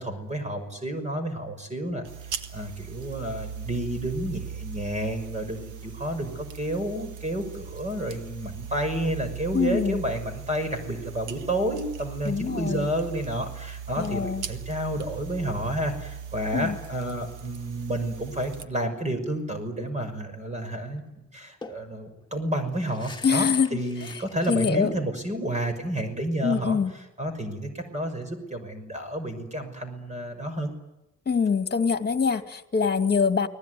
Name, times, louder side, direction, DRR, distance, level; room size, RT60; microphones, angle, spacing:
voice 1, 0.0-2.0 2.5-30.7, right 1 dB, 25° right, 7 dB, 5.9 m, -30 dB
sound 1, 2.0-18.7, right 8 dB, 85° right, 1.7 m, -39 dB
voice 2, 9.5-10.0 12.3-12.9 14.0-14.4 16.5-16.8 23.2-24.1 24.5-24.9 26.4-26.9 31.3-33.5, left 5 dB, 35° left, 8 dB, 2.4 m, -24 dB
sound 2, 20.5-20.7 21.0-21.1 21.6-24.5, left 3 dB, 15° left, 2.6 m, -46 dB
30.0 x 20.5 x 9.5 m, 0.92 s
cardioid pair, 90°, 30 cm